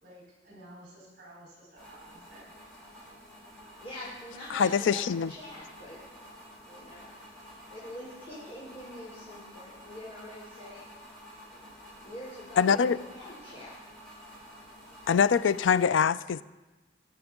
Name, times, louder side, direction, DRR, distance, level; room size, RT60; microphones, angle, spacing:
voice 1, 0.0-2.5, right 1 dB, 55° right, 4.0 m, -52 dB
sound 1, 1.8-15.8, equal, 5° left, 4.4 m, -50 dB
voice 2, 3.8-6.0 6.7-7.1 7.4-10.9 11.5-11.7 12.0-13.8, left 1 dB, 35° left, 3.0 m, -44 dB
voice 3, 4.5-5.3 12.6-13.0 15.1-16.4, left 7 dB, 80° left, 0.4 m, -24 dB
21.0 x 7.0 x 3.7 m
head